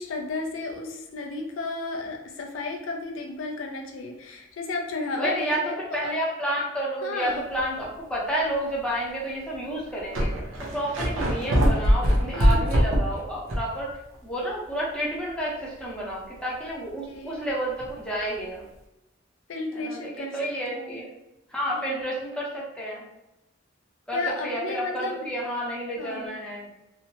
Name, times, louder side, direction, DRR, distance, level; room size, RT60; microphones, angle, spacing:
voice 1, 0.0-6.2 7.0-7.5 12.3-12.9 17.1-17.4 19.5-20.4 20.7-21.0 21.7-22.0 24.1-25.3 26.0-26.4, left 3 dB, 75° left, 2 dB, 0.4 m, -33 dB
voice 2, 5.1-5.6 5.9-10.3 10.6-13.9 14.2-18.7 19.7-21.1 21.5-23.0 24.1-26.8, right 1 dB, 5° left, -5 dB, 0.6 m, -30 dB
sound 1, 7.6-7.9 8.5-8.6 9.5-9.6 9.8-13.8 14.1-14.2 17.8-17.9, equal, 90° right, 0.7 m, -23 dB
2.9 x 2.0 x 2.8 m, 0.94 s
head